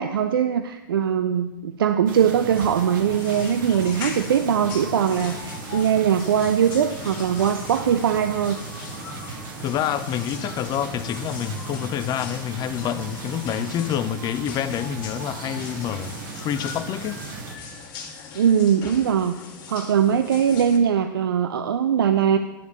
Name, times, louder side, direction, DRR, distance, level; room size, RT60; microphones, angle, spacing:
voice 1, 0.0-8.6 18.3-19.3 19.7-22.4, right 8 dB, 80° right, 0.4 m, -21 dB
sound 1, 2.1-17.6, right 4 dB, 65° right, 1.2 m, -37 dB
sound 2, 2.5-20.8, left 5 dB, 60° left, 1.8 m, -40 dB
voice 2, 9.6-17.2, left 10 dB, 35° left, 0.5 m, -27 dB
10.0 x 3.5 x 7.2 m
hypercardioid pair, 95°, 12 cm